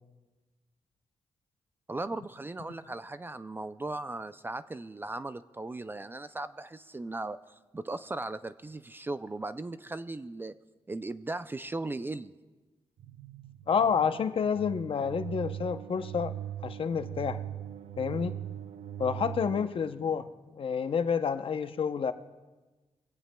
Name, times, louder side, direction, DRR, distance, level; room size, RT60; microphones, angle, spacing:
voice 1, 1.9-10.5 10.9-12.3, right 2 dB, 20° right, 12 dB, 0.3 m, -37 dB
sound 1, 13.0-19.7, right 11 dB, 85° right, 0.6 m, -40 dB
voice 2, 13.7-16.3 16.6-17.4 18.0-18.3 19.0-20.3 20.5-22.1, left 6 dB, 50° left, 10 dB, 0.6 m, -29 dB
22.5 x 16.5 x 2.2 m, 1.2 s
wide cardioid pair, 125°, 11 cm